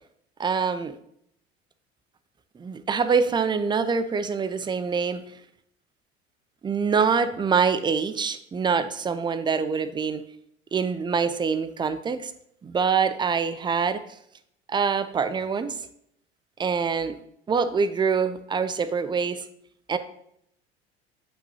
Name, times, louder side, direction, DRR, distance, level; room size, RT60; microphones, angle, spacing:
voice 1, 0.4-1.0 2.6-5.2 6.6-10.2 10.7-12.3 12.6-14.0 14.7-15.8 16.6-17.2 17.5-19.5 19.9-20.0, right 5 dB, 15° right, 12 dB, 0.4 m, -25 dB
7.7 x 5.8 x 2.8 m, 0.72 s
figure-of-eight pair, 65°, 31 cm